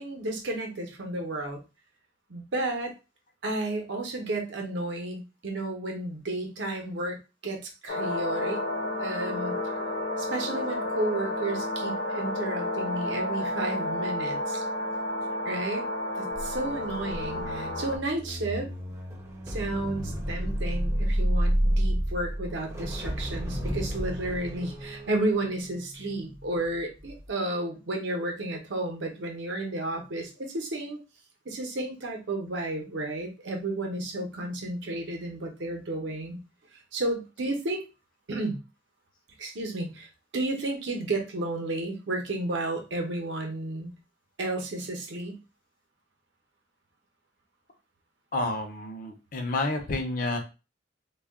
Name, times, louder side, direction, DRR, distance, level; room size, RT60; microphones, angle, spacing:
voice 1, 0.0-1.6 2.3-2.9 3.4-7.2 7.4-8.6 9.0-9.5 10.2-14.6 15.4-15.9 16.1-18.7 19.5-31.0 31.4-36.4 36.9-37.9 38.3-38.6 39.4-43.9 44.4-45.4, right 2 dB, 70° right, 2 dB, 0.7 m, -32 dB
sound 1, 7.9-18.0, left 1 dB, 60° left, 0.9 m, -31 dB
sound 2, 16.3-26.6 27.0-27.3, equal, 15° right, 0.5 m, -30 dB
voice 2, 48.3-50.4, left 2 dB, 45° left, 3 dB, 0.6 m, -30 dB
2.3 x 2.2 x 3.5 m, 0.29 s
head